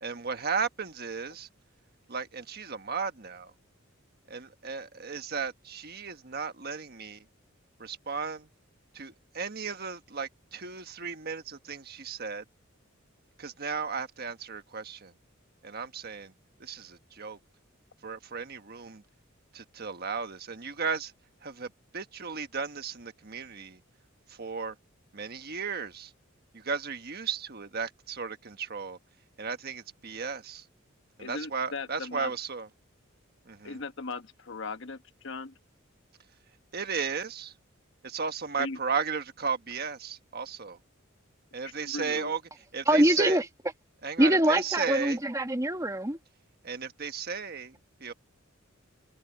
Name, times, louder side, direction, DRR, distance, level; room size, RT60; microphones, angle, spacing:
voice 1, 0.0-1.5 2.1-3.5 4.3-7.2 7.8-8.5 8.9-12.4 13.4-15.1 15.6-16.3 16.6-17.4 18.0-19.0 19.5-21.1 21.4-23.8 24.3-24.8 25.1-26.1 26.5-29.0 29.4-30.6 31.2-32.7 33.4-33.9 36.7-37.5 38.0-40.8 41.5-43.4 44.0-45.2 46.6-48.1, right 5 dB, 50° right, 1.4 m, -35 dB
voice 2, 31.2-32.3 33.6-35.5 38.6-38.8 41.8-42.3, left 3 dB, 65° left, 1.2 m, -38 dB
voice 3, 42.9-43.5 44.2-46.2, right 1 dB, 15° right, 1.6 m, -24 dB
head